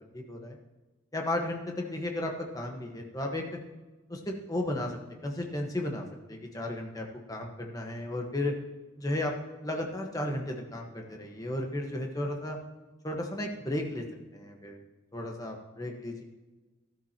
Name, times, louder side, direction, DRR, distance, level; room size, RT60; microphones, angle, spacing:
voice 1, 0.1-0.6 1.1-3.4 4.1-8.5 9.0-9.3 9.6-12.6 13.0-14.0 14.3-14.8 15.1-16.2, left 1 dB, 20° left, 1 dB, 1.3 m, -34 dB
13.0 x 13.0 x 2.9 m, 1.2 s
head